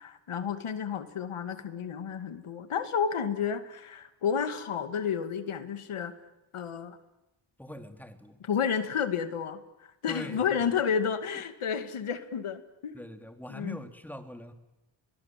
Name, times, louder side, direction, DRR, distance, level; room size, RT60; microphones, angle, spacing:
voice 1, 0.0-6.1 6.5-7.0 8.4-13.0 13.5-13.8, left 7 dB, 80° left, 9 dB, 2.3 m, -31 dB
voice 2, 7.6-8.4 10.1-10.6 11.3-11.4 12.9-14.5, left 1 dB, 5° left, 6 dB, 2.9 m, -42 dB
30.0 x 22.5 x 7.6 m, 0.95 s
cardioid pair, 80°, 49 cm